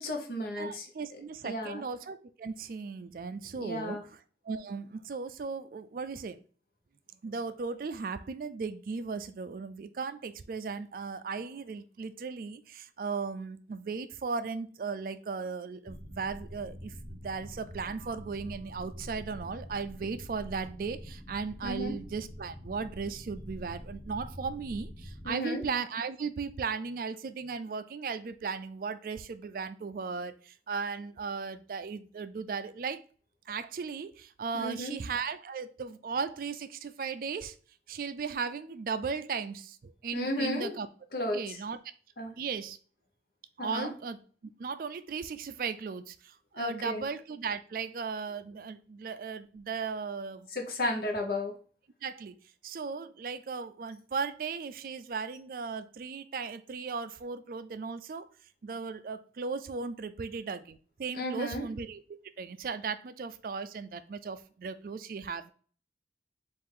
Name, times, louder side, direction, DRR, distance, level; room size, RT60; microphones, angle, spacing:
voice 1, 0.0-0.9 1.4-1.8 3.5-4.0 21.6-22.0 25.2-25.6 34.5-35.0 40.1-40.8 41.1-41.6 42.2-42.3 43.6-43.9 46.5-47.0 50.5-51.6 61.1-61.6, left 1 dB, 55° left, 2 dB, 0.8 m, -33 dB
voice 2, 0.6-4.0 4.4-6.4 7.2-33.0 33.5-37.6 37.9-40.9 41.3-41.8 42.4-42.8 43.6-44.2 44.6-50.5 52.0-52.4 52.6-58.3 58.6-62.0 62.4-65.5, right 5 dB, 50° right, 12 dB, 0.3 m, -36 dB
sound 1, 15.8-25.3, equal, 5° left, 0.6 m, -45 dB
4.7 x 2.5 x 3.7 m, 0.41 s
head